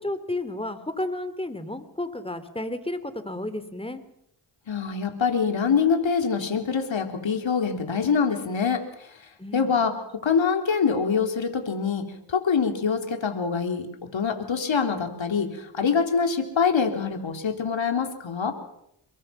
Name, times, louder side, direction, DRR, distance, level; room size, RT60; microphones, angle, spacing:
voice 1, 0.0-4.0 9.4-9.7, left 1 dB, 10° left, 11 dB, 3.6 m, -32 dB
voice 2, 4.7-9.1 9.5-18.5, left 6 dB, 65° left, 5 dB, 3.8 m, -25 dB
28.0 x 22.5 x 6.0 m, 0.75 s
cardioid pair, 50°, 48 cm